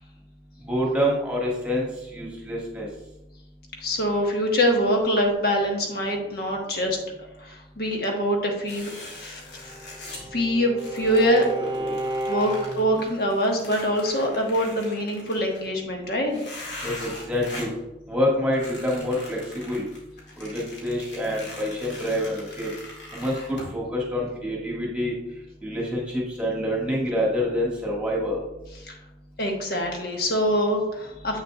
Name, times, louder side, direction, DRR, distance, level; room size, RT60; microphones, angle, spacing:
voice 1, 0.7-2.9 11.6-11.9 16.8-17.7 18.1-19.8 20.4-22.7 23.1-25.2 25.6-28.4, equal, 5° right, -4 dB, 1.6 m, -27 dB
voice 2, 3.8-7.0 7.4-9.7 10.3-11.5 12.3-16.4 28.9-29.0 29.4-31.4, equal, 60° left, 1 dB, 1.3 m, -24 dB
sound 1, 8.7-10.3 10.8-15.6 16.3-17.8 18.5-23.7, left 1 dB, 80° left, 2.1 m, -41 dB
Bowed string instrument, 9.5-13.1, right 1 dB, 25° right, 0.6 m, -33 dB
7.8 x 6.7 x 2.3 m, 0.95 s
head